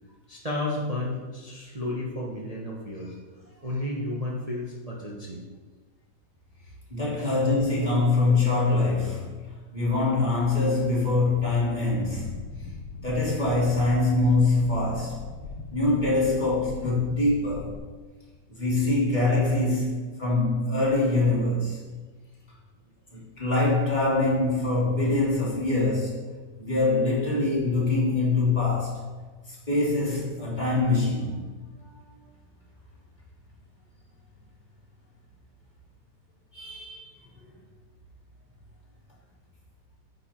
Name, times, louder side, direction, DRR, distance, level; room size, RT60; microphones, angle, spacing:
voice 1, 0.3-3.2 3.4-5.4 7.2-7.3, left 1 dB, 25° right, -3 dB, 1.0 m, -32 dB
voice 2, 6.9-9.4 9.7-12.4 13.0-15.2 15.7-17.8 18.5-21.8 23.1-26.2 26.6-29.0 29.5-31.4 31.9-32.0 36.5-37.1, left 2 dB, 20° left, -7 dB, 3.1 m, -24 dB
sound 1, 12.0-17.8, left 4 dB, 90° left, 1.6 m, -40 dB
9.5 x 8.0 x 4.4 m, 1.4 s
omnidirectional pair, 2.1 m